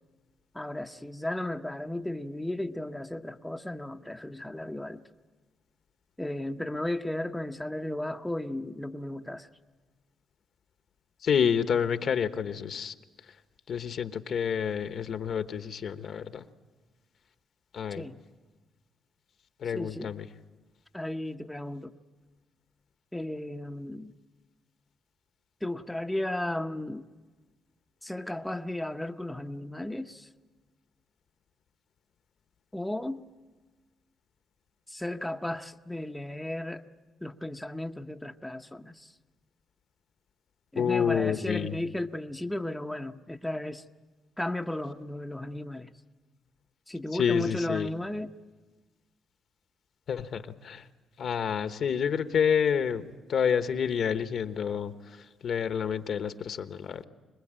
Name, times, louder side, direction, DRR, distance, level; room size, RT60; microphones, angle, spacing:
voice 1, 0.5-5.0 6.2-9.5 18.0-18.2 19.7-20.1 20.9-22.0 23.1-24.1 25.6-27.0 28.0-30.3 32.7-33.2 34.9-36.9 37.2-39.2 40.7-43.8 44.4-45.9 46.9-48.3, left 1 dB, 5° left, 5 dB, 0.8 m, -35 dB
voice 2, 11.2-12.9 13.7-16.5 17.7-18.0 19.6-20.3 40.8-41.7 47.1-47.9 50.1-50.8 51.2-53.0 53.3-57.1, left 7 dB, 60° left, 10 dB, 1.1 m, -28 dB
25.5 x 20.0 x 8.9 m, 1.3 s
cardioid pair, 90°, 0 cm